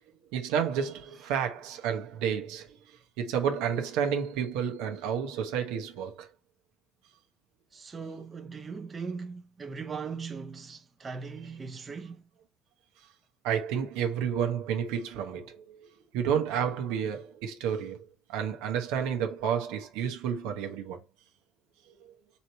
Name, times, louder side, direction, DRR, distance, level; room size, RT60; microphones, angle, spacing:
voice 1, 0.3-2.7 3.2-6.3 13.4-15.8 16.1-21.0, right 8 dB, 80° right, 1.0 m, -30 dB
voice 2, 7.7-12.2, right 5 dB, 30° right, 0.8 m, -39 dB
4.1 x 3.0 x 4.2 m
supercardioid pair, 85°, 0 cm